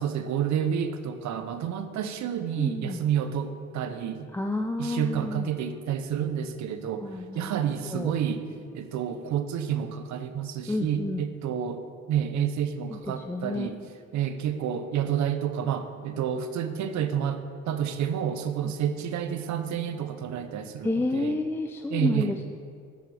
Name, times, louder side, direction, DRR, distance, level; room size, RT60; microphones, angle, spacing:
voice 1, 0.0-4.3 4.8-8.5 8.7-13.8 14.1-21.4 21.9-22.4, right 8 dB, 70° right, 10 dB, 0.6 m, -29 dB
voice 2, 2.6-3.0 4.3-5.5 7.0-7.5 7.8-8.1 10.7-11.2 12.9-13.7 18.6-18.7 20.8-22.4, left 2 dB, 10° left, 4 dB, 0.3 m, -30 dB
12.0 x 5.2 x 3.3 m, 2.3 s
cardioid pair, 80°, 29 cm